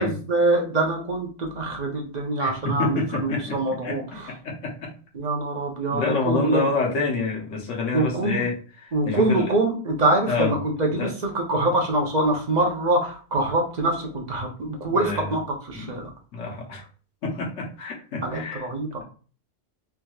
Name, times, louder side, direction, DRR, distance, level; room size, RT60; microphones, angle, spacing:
voice 1, 0.0-4.3 5.1-6.7 7.9-8.4 8.9-16.1 18.2-19.0, right 2 dB, 40° right, 1 dB, 0.8 m, -24 dB
voice 2, 2.4-3.6 3.8-4.9 5.9-9.5 10.2-10.5 11.0-11.1 15.0-15.3 15.7-15.9 16.3-16.8 17.2-18.7, left 3 dB, 90° left, 0 dB, 1.2 m, -28 dB
3.5 x 2.9 x 2.3 m, 0.39 s
omnidirectional pair, 1.2 m